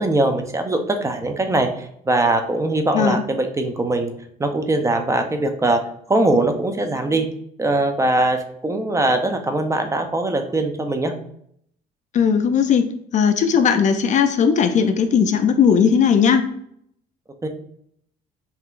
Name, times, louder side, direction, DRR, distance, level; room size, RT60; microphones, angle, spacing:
voice 1, 0.0-4.1 4.4-5.8 6.1-7.3 7.6-8.4 8.6-11.1 17.4-17.5, right 2 dB, 15° right, 5 dB, 0.5 m, -21 dB
voice 2, 12.1-12.9 13.1-16.5, left 7 dB, 45° left, 8 dB, 0.4 m, -17 dB
5.7 x 2.8 x 2.4 m, 0.68 s
cardioid pair, 110°, 17 cm